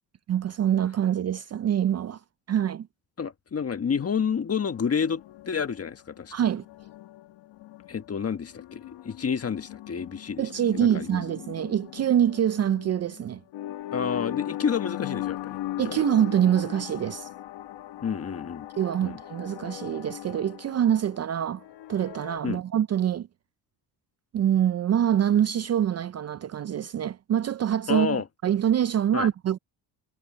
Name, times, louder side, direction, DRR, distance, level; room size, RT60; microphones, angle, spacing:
voice 1, 0.3-2.2 2.5-2.9 6.3-6.6 10.4-13.4 15.8-17.3 18.8-21.6 21.9-23.3 24.3-28.2 28.4-29.6, right 10 dB, 40° right, 0.5 m, -25 dB
voice 2, 3.2-6.3 7.9-11.2 13.9-16.0 18.0-18.7 19.0-19.2 22.4-22.6 27.9-28.2 29.1-29.3, left 6 dB, 35° left, 1.5 m, -30 dB
sound 1, 4.6-22.4, left 14 dB, 80° left, 1.4 m, -39 dB
cardioid pair, 105°, 42 cm